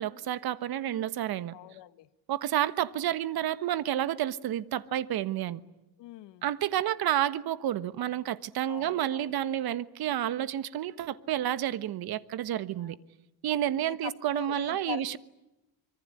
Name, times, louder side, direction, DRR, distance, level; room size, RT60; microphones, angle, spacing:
voice 1, 0.0-1.6 2.3-5.6 6.4-13.0 13.4-15.2, right 12 dB, 60° right, 1.4 m, -30 dB
voice 2, 1.5-2.1 6.0-6.5 8.7-9.3 12.5-12.9 13.8-15.2, left 14 dB, 75° left, 1.5 m, -43 dB
25.5 x 23.0 x 9.8 m
cardioid pair, 110°, 43 cm